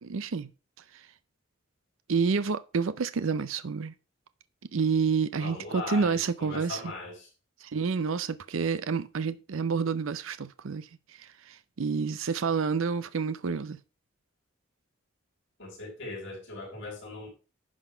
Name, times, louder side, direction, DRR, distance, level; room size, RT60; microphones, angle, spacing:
voice 1, 0.0-0.5 0.9-1.0 2.1-3.9 4.7-6.8 7.6-10.9 11.2-13.8, right 5 dB, 75° right, 0.5 m, -29 dB
voice 2, 5.4-7.3 15.6-17.3, left 3 dB, 55° left, 5.2 m, -39 dB
11.0 x 4.0 x 5.5 m
head